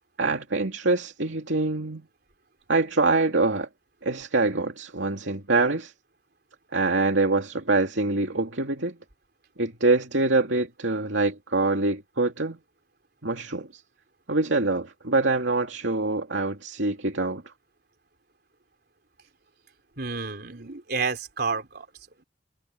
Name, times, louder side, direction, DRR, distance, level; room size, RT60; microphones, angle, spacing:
voice 1, 0.2-2.1 2.7-3.7 4.0-5.9 6.7-9.0 9.6-12.6 13.2-13.8 14.3-17.4, right 3 dB, 90° right, 2.5 m, -25 dB
voice 2, 20.0-21.9, right 4 dB, 60° right, 4.0 m, -30 dB
head